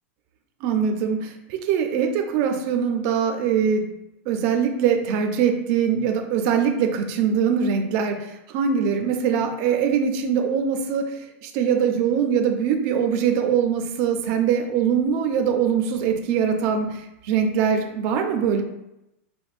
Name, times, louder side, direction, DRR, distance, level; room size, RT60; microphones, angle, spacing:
voice 1, 0.6-3.9 4.3-18.6, right 7 dB, 35° right, 5 dB, 0.4 m, -22 dB
5.1 x 2.1 x 2.4 m, 0.90 s
supercardioid pair, 165°, 8 cm